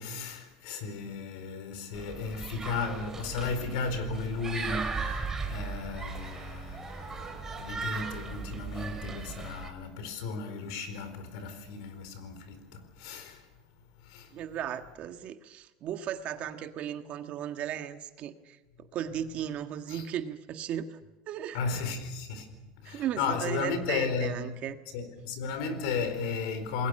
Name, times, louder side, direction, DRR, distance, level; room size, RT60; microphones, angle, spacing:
voice 1, 0.0-13.5 14.0-14.3 19.9-20.1 21.5-24.4 24.9-26.9, left 5 dB, 80° left, 4.5 m, -35 dB
sound 1, 1.9-9.7, right 4 dB, 15° right, 3.0 m, -37 dB
voice 2, 14.3-18.6 18.9-21.0 21.3-21.6 22.8-24.8, right 10 dB, 45° right, 1.6 m, -36 dB
28.5 x 21.0 x 6.6 m
cardioid pair, 150°, 3 cm